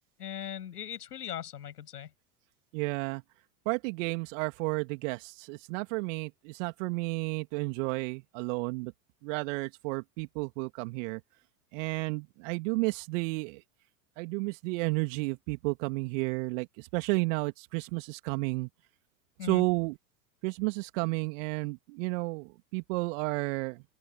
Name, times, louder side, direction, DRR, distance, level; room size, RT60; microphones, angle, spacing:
voice 1, 0.2-2.1 19.4-19.6, left 10 dB, 70° left, 7.6 m, -39 dB
voice 2, 2.7-3.2 3.6-8.9 9.2-11.2 11.7-13.6 14.2-18.7 19.4-20.0 20.4-23.8, right 28 dB, 50° right, 3.0 m, -32 dB
open air
figure-of-eight pair, 90°, 48 cm